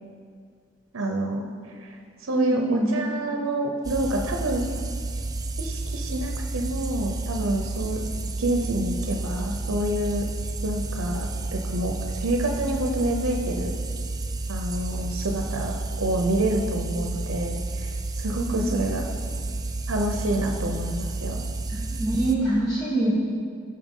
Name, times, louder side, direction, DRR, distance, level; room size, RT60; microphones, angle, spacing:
voice 1, 0.9-1.5 1.8-4.7 5.6-8.0 8.4-10.3 10.6-13.7 14.5-19.0 19.9-21.4, right 1 dB, 85° right, 2 dB, 0.8 m, -28 dB
voice 2, 2.3-2.9 18.5-18.8 22.0-23.1, right 1 dB, 20° left, -8 dB, 1.2 m, -24 dB
sound 1, 3.8-22.4, right 2 dB, 20° right, 0.4 m, -31 dB
14.0 x 5.7 x 3.7 m, 2.2 s
head